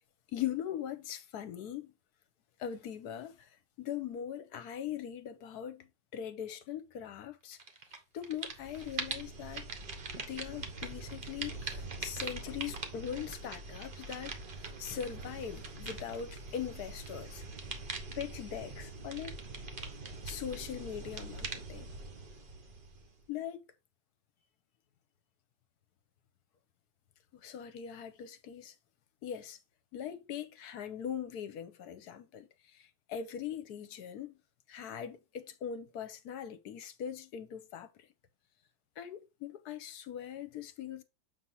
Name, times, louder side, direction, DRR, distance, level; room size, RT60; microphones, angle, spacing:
voice 1, 0.3-1.9 2.6-3.3 3.8-7.6 8.1-9.6 10.2-17.4 18.2-19.3 20.2-21.9 23.3-23.6 27.4-28.7 29.2-29.6 29.9-32.5 33.1-34.4 34.7-37.9 39.0-41.0, left 9 dB, 65° left, 1.2 m, -41 dB
sound 1, 7.6-8.0 8.2-23.2, right 3 dB, 40° right, 0.7 m, -42 dB
7.2 x 2.8 x 5.6 m
omnidirectional pair, 2.0 m